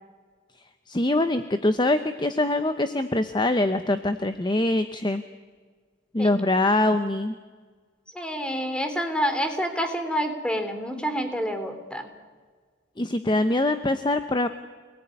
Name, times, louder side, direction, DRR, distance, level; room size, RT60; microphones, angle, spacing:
voice 1, 0.9-5.2 6.1-7.4 13.0-14.5, left 2 dB, 25° left, 9 dB, 0.8 m, -23 dB
voice 2, 8.1-12.1, equal, 5° left, 7 dB, 3.2 m, -28 dB
27.0 x 19.0 x 9.8 m, 1.5 s
head